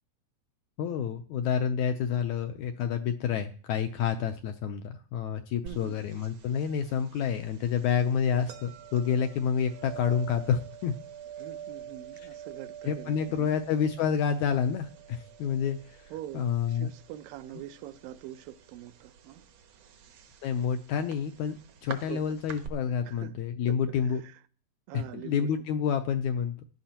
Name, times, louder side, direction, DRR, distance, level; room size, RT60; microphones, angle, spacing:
voice 1, 0.8-10.9 12.9-16.0 16.3-16.9 20.4-21.6 21.8-24.2 24.9-26.6, left 7 dB, 75° left, 1.8 m, -29 dB
voice 2, 5.6-6.0 11.4-13.6 16.1-19.4 22.1-22.2 23.0-23.4 23.7-24.4 24.9-25.8, right 13 dB, 80° right, 2.4 m, -44 dB
sound 1, 5.7-22.7, right 8 dB, 65° right, 1.6 m, -47 dB
16.0 x 11.0 x 2.9 m
omnidirectional pair, 4.0 m